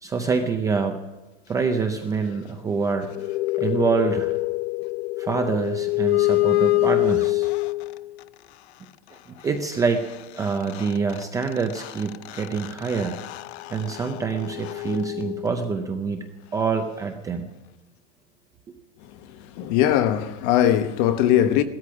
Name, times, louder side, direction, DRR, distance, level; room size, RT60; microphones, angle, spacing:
voice 1, 0.0-1.0 1.5-3.1 3.6-4.3 5.2-7.5 9.4-10.0 10.4-13.2 13.7-16.2 16.5-17.5, right 5 dB, 10° right, 0.5 m, -26 dB
sound 1, 2.8-8.2 10.1-10.2 10.4-15.9, left 21 dB, 65° left, 0.6 m, -26 dB
voice 2, 19.0-21.6, left 11 dB, 45° left, 1.1 m, -21 dB
17.5 x 13.0 x 6.2 m
supercardioid pair, 170°, 35 cm